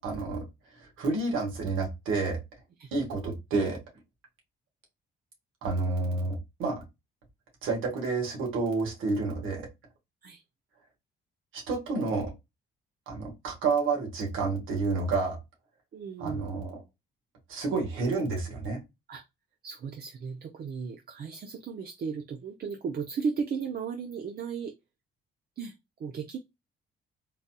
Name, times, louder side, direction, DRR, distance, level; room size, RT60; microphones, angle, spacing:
voice 1, 0.0-0.4 0.7-2.4 2.9-3.8 5.6-6.8 7.6-9.7 11.5-12.3 13.1-15.4 16.2-16.8 17.5-18.8, right 3 dB, 90° right, 1.6 m, -29 dB
voice 2, 15.9-16.4 19.1-19.2 19.6-24.7 25.6-25.7 26.0-26.4, right 6 dB, 50° right, 0.6 m, -35 dB
3.9 x 2.7 x 2.2 m
cardioid pair, 90°, 20 cm